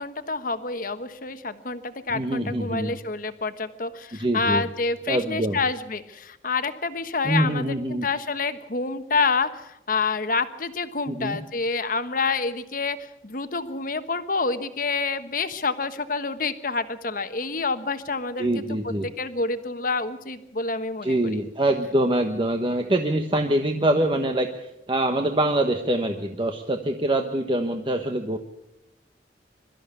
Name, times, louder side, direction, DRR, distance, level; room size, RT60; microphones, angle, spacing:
voice 1, 0.0-13.0 13.2-18.8 19.2-21.1, left 4 dB, 50° left, 10 dB, 1.3 m, -28 dB
voice 2, 2.1-3.0 4.1-4.6 5.1-5.6 7.2-8.1 11.1-11.4 18.4-19.1 21.0-28.4, right 1 dB, 30° right, 4 dB, 1.2 m, -24 dB
23.5 x 13.5 x 8.4 m, 0.87 s
head